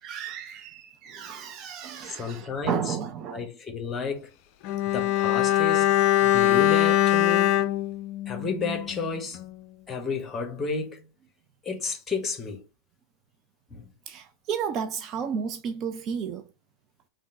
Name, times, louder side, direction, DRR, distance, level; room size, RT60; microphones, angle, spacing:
voice 1, 0.0-3.4 14.1-16.5, right 7 dB, 35° right, 0.4 m, -32 dB
voice 2, 1.1-1.5 2.1-3.0 3.3-4.3 4.9-5.9 6.2-7.6 8.3-9.4 9.9-11.1 11.6-12.6 13.7-13.9, left 4 dB, 15° left, 1.3 m, -32 dB
Bowed string instrument, 4.6-9.1 9.3-9.5, left 13 dB, 45° left, 0.3 m, -22 dB
3.6 x 2.5 x 4.1 m
figure-of-eight pair, 90°, 0 cm